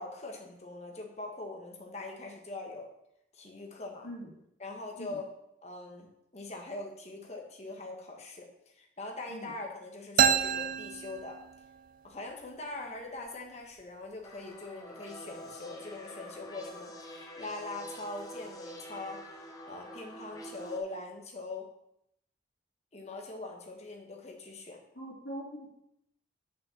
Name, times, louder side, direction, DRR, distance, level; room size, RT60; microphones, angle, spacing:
voice 1, 0.0-2.9 3.3-4.1 4.6-5.3 5.6-11.4 12.0-19.2 19.7-21.7 22.9-24.8, left 2 dB, 35° left, 1 dB, 1.4 m, -42 dB
sound 1, 10.2-11.9, right 8 dB, 45° right, 0.3 m, -28 dB
sound 2, 14.2-20.8, equal, 20° left, 1.0 m, -46 dB
voice 2, 25.0-25.8, equal, 70° left, -8 dB, 2.8 m, -42 dB
6.4 x 5.7 x 7.0 m, 0.79 s
head